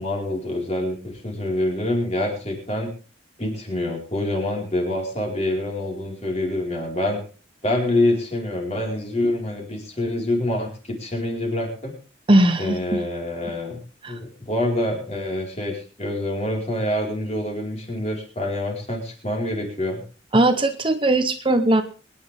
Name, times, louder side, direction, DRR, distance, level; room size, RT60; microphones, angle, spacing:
voice 1, 0.0-2.9 3.4-7.2 7.6-12.0 12.6-13.8 14.1-20.0, left 1 dB, 35° left, 1 dB, 4.7 m, -26 dB
voice 2, 12.3-12.8 14.0-14.1 20.3-21.8, right 1 dB, 25° right, 8 dB, 1.0 m, -18 dB
24.0 x 10.5 x 3.6 m, 0.36 s
head